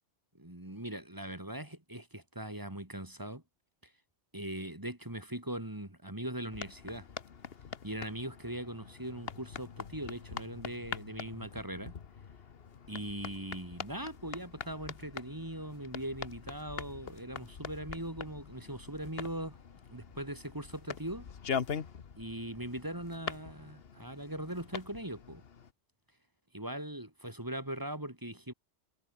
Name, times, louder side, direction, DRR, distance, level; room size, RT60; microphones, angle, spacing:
voice 1, 0.3-3.4 3.8-3.9 4.3-7.1 7.8-11.9 12.9-19.6 19.9-21.3 22.2-25.4 26.5-28.5, right 1 dB, 15° right, 2.6 m, -40 dB
sound 1, 6.5-25.7, left 7 dB, 55° left, 1.3 m, -43 dB
omnidirectional pair, 1.2 m